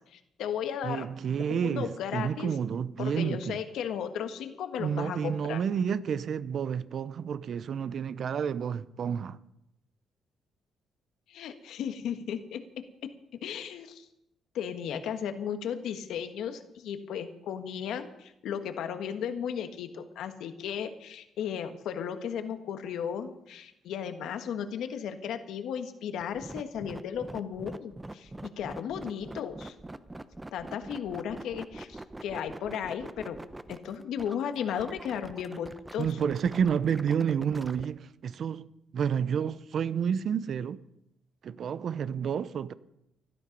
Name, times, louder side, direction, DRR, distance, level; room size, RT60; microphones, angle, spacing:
voice 1, 0.1-1.0 1.5-2.5 3.0-5.6 11.3-12.6 13.4-14.1 14.5-29.7 30.5-33.4 33.7-36.1, left 8 dB, 80° left, 1.4 m, -35 dB
voice 2, 0.8-3.6 4.8-9.4 36.0-38.7 38.9-40.8 41.4-42.7, right 7 dB, 60° right, 0.7 m, -30 dB
sound 1, 26.2-37.8, right 2 dB, 15° right, 0.8 m, -43 dB
16.5 x 12.0 x 5.3 m
cardioid pair, 90°, 0 cm